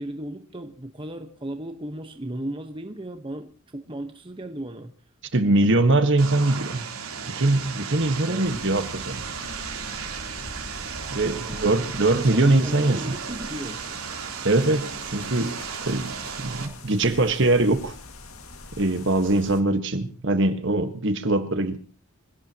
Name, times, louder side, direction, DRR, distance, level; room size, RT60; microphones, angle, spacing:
voice 1, 0.0-4.9 8.1-8.6 11.4-13.8, right 1 dB, 25° right, 1.2 m, -35 dB
voice 2, 5.3-6.9 7.3-9.2 11.1-13.0 14.4-17.9 18.8-21.8, right 2 dB, 55° right, 1.6 m, -22 dB
Vehicle, 6.2-16.7, right 6 dB, 80° right, 3.5 m, -35 dB
sound 1, 8.4-19.6, left 2 dB, 75° left, 2.1 m, -44 dB
25.5 x 17.5 x 3.0 m
head